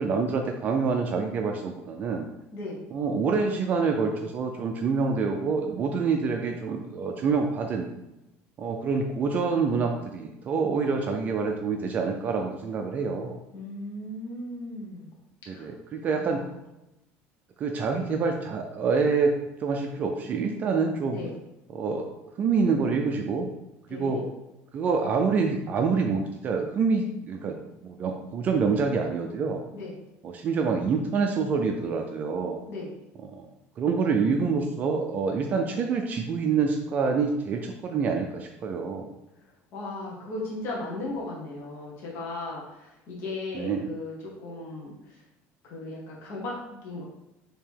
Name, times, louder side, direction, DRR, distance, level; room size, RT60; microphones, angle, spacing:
voice 1, 0.0-2.3 2.9-7.9 8.6-13.4 15.5-16.4 17.6-21.2 21.7-22.0 22.4-23.5 23.9-24.2 24.7-27.6 27.8-29.6 30.2-32.6 33.2-33.5 33.8-39.1 43.5-43.9, right 5 dB, 35° right, 3 dB, 0.4 m, -26 dB
voice 2, 2.5-2.8 13.5-15.1 15.5-15.7 16.0-16.5 21.1-21.3 23.9-24.3 29.7-30.0 32.7-32.9 39.4-45.2 45.6-47.0, left 2 dB, 55° left, -3 dB, 1.1 m, -37 dB
3.6 x 2.8 x 4.5 m, 0.93 s
cardioid pair, 160°, 5 cm